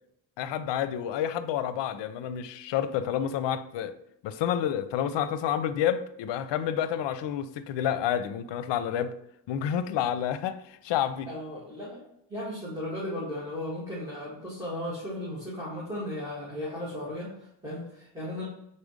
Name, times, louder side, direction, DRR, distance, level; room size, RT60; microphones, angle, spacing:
voice 1, 0.4-3.9 4.2-9.1 9.5-11.3, left 9 dB, 70° left, 0.6 m, -29 dB
voice 2, 11.3-18.4, left 1 dB, 10° right, 2.0 m, -36 dB
5.0 x 4.3 x 5.0 m
cardioid pair, 130°, 44 cm